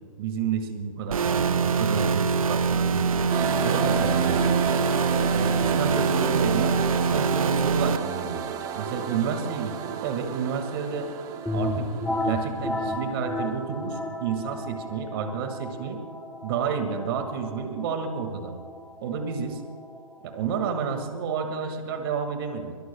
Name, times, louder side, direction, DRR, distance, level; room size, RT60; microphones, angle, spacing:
voice 1, 0.2-3.3 3.6-4.6 5.3-8.4 8.8-11.1 11.5-11.9 12.2-16.0 16.4-18.5 19.0-19.6 20.2-22.8, right 6 dB, 40° right, 6 dB, 2.1 m, -30 dB
sound 1, 1.1-8.0, right 5 dB, 75° right, 0.7 m, -24 dB
sound 2, 3.3-13.6, right 7 dB, 20° right, 0.9 m, -31 dB
sound 3, 11.4-21.0, left 1 dB, 5° left, 1.0 m, -34 dB
22.5 x 21.0 x 2.3 m, 2.1 s
hypercardioid pair, 140°, 18 cm